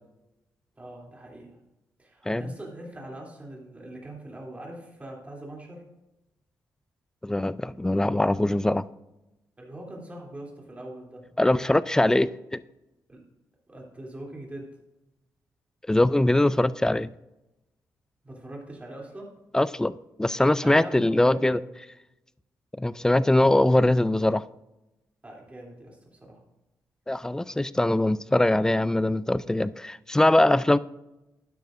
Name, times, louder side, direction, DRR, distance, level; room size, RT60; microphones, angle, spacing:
voice 1, 0.8-1.6 2.0-5.8 9.6-11.3 13.1-13.2 13.7-14.7 18.2-19.3 20.6-21.7 25.2-26.4, right 1 dB, 20° right, 3.0 m, -41 dB
voice 2, 7.2-8.8 11.4-12.6 15.9-17.1 19.5-21.6 22.8-24.4 27.1-30.8, left 1 dB, 10° left, 0.3 m, -22 dB
12.0 x 9.3 x 2.6 m
cardioid pair, 95°, 7 cm